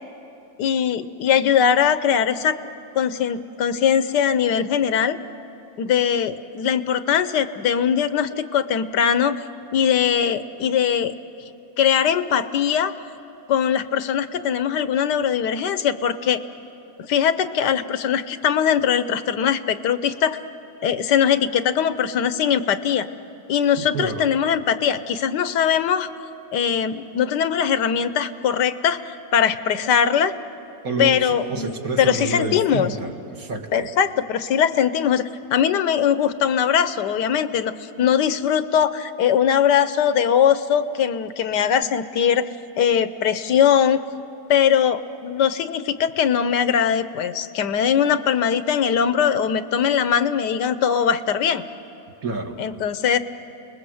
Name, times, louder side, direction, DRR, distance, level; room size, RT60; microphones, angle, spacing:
voice 1, 0.6-2.6 2.9-5.2 5.8-9.3 9.7-11.1 11.8-12.9 13.5-16.4 17.0-20.4 20.8-23.1 23.5-26.1 26.5-30.3 31.0-32.9 33.7-42.5 42.8-44.0 44.5-51.6 52.6-53.2, left 8 dB, 75° left, 12 dB, 1.4 m, -21 dB
voice 2, 23.8-24.3 30.8-33.9 52.2-52.6, right 3 dB, 55° right, 4 dB, 2.1 m, -29 dB
29.5 x 20.5 x 7.8 m, 2.9 s
omnidirectional pair, 1.9 m